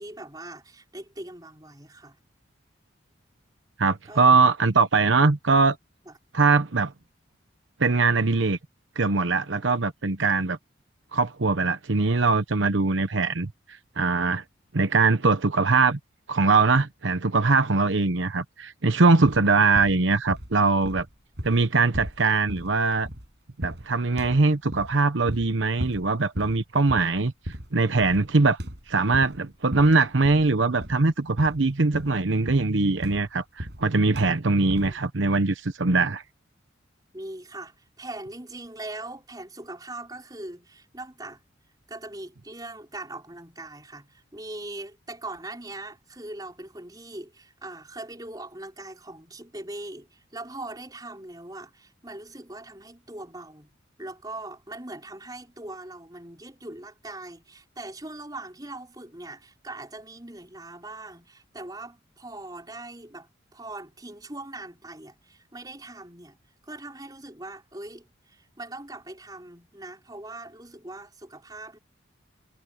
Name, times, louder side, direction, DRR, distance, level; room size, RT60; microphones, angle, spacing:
voice 1, 0.0-2.2 4.1-4.4 6.1-6.2 34.3-35.0 37.1-41.4 41.9-53.7 54.0-71.8, right 2 dB, 20° right, 5.4 m, -41 dB
voice 2, 3.8-5.8 6.3-6.9 7.8-8.6 9.0-10.6 11.1-13.5 14.0-14.4 14.7-16.0 16.3-21.1 21.4-23.1 23.6-27.3 27.7-28.6 28.9-36.2, right 3 dB, 75° right, 1.0 m, -22 dB
sound 1, 19.2-19.5 19.7-20.6 20.8-23.3 23.6-23.9 24.2-25.0 25.3-25.5 25.8-26.1 26.4-26.6 26.9-27.2 27.5-27.8 28.0-28.3 28.6-29.4 29.7-30.5 30.8-31.1 31.4-31.7 31.9-33.9 34.1-34.4 34.7-35.0, equal, 60° right, 7.7 m, -36 dB
head